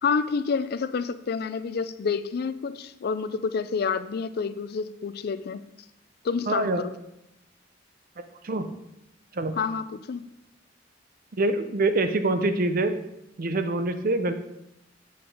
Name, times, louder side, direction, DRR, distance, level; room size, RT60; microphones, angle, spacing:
voice 1, 0.0-5.6 6.2-6.9 9.6-10.2, left 5 dB, 55° left, 13 dB, 0.4 m, -28 dB
voice 2, 6.5-6.8 8.4-8.7 9.3-9.6 11.3-13.0 13.4-14.3, right 2 dB, 50° right, 9 dB, 0.6 m, -25 dB
7.9 x 5.1 x 4.7 m, 0.87 s
head